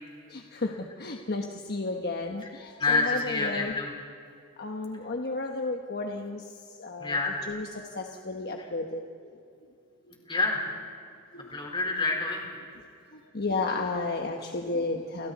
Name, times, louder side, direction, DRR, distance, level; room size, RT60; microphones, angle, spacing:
voice 1, 0.3-3.8 4.6-7.2 7.5-7.7 7.9-9.4 11.3-11.5 13.1-15.3, left 3 dB, 45° left, 3 dB, 1.2 m, -33 dB
voice 2, 2.8-3.9 7.0-7.3 8.6-8.7 10.3-10.7 11.5-12.5, left 3 dB, 20° left, 0 dB, 4.2 m, -27 dB
29.5 x 25.0 x 4.2 m, 2.6 s
head